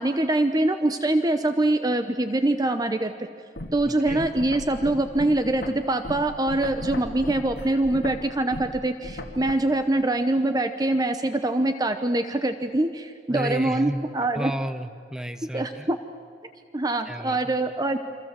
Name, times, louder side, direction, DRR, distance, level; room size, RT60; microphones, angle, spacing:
voice 1, 0.0-3.1 3.7-14.5 15.5-16.0 16.7-18.0, right 2 dB, 20° right, 9 dB, 0.8 m, -24 dB
sound 1, 3.6-9.5, left 1 dB, 60° left, 2.4 m, -37 dB
voice 2, 13.3-14.1 14.3-15.9 17.1-17.5, equal, 5° right, 10 dB, 1.1 m, -32 dB
28.0 x 25.0 x 7.6 m, 2.3 s
head